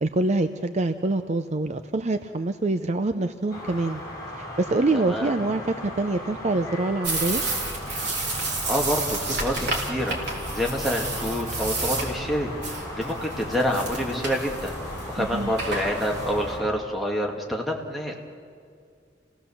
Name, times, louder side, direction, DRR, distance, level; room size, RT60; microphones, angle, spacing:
voice 1, 0.0-4.0 4.4-7.4 15.2-15.5, right 2 dB, 40° right, 9 dB, 0.6 m, -25 dB
sound 1, 3.5-16.7, left 1 dB, 20° left, 6.0 m, -37 dB
voice 2, 4.9-5.3 8.3-14.7 15.1-18.2, equal, ahead, 0 dB, 2.1 m, -28 dB
sound 2, 7.0-16.6, right 2 dB, 65° right, 3.4 m, -31 dB
29.5 x 17.5 x 7.1 m, 2.3 s
head